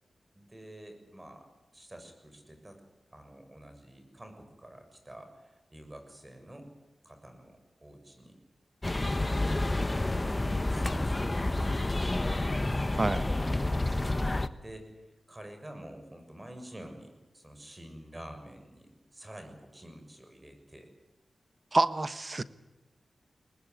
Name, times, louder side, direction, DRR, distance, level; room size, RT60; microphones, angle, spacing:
voice 1, 0.3-1.5 1.7-2.8 3.1-6.7 7.0-8.4 9.2-9.4 10.3-12.3 14.1-20.9, right 1 dB, 25° right, 6 dB, 6.7 m, -49 dB
sound 1, 8.8-14.5, left 2 dB, 25° left, 1.2 m, -29 dB
voice 2, 13.0-13.3 21.7-22.4, right 3 dB, 40° right, 14 dB, 1.1 m, -27 dB
22.0 x 20.0 x 9.6 m, 1.0 s
cardioid pair, 45°, 0 cm